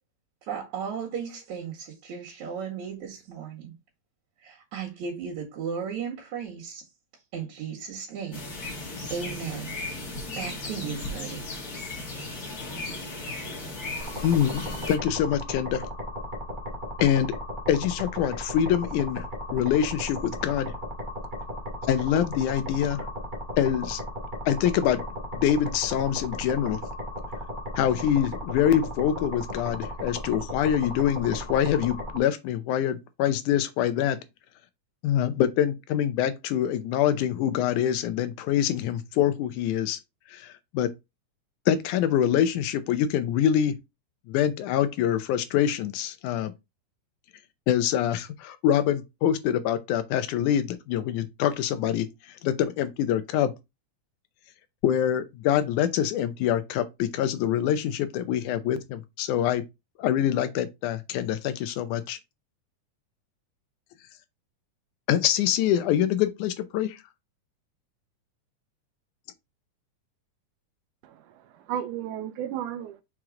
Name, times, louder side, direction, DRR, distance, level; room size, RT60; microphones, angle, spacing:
voice 1, 0.4-3.7 4.4-6.8 7.3-8.5 9.1-9.7 10.4-11.4, right 7 dB, 65° right, 3.2 m, -35 dB
sound 1, 8.3-15.0, left 2 dB, 35° left, 2.0 m, -36 dB
sound 2, 14.0-32.2, equal, 20° right, 1.7 m, -36 dB
voice 2, 14.2-15.8 17.0-17.4 17.7-19.3 19.5-20.7 21.9-23.1 23.6-24.0 24.5-25.0 25.3-26.8 27.8-34.2 35.0-40.0 40.3-40.9 41.7-43.8 44.3-46.5 47.7-52.1 52.4-53.5 54.8-59.7 60.0-62.2 65.1-67.0, left 10 dB, 75° left, 2.0 m, -25 dB
voice 3, 71.0-73.0, right 10 dB, 80° right, 2.3 m, -34 dB
6.1 x 4.6 x 3.7 m
omnidirectional pair, 3.7 m